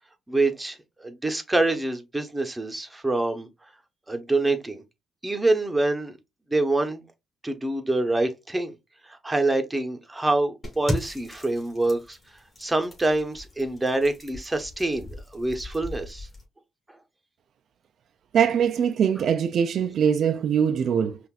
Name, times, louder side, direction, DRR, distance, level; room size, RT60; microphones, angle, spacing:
voice 1, 0.3-3.5 4.1-4.8 5.2-6.2 6.5-7.0 7.4-8.8 9.0-12.2 12.6-16.3 16.9-17.0, right 2 dB, 15° right, 0.9 m, -26 dB
sound 1, 10.6-16.4, left 1 dB, 25° left, 2.6 m, -37 dB
voice 2, 18.3-21.2, right 8 dB, 65° right, 0.4 m, -22 dB
5.6 x 2.5 x 2.3 m
cardioid pair, 90°, 0 cm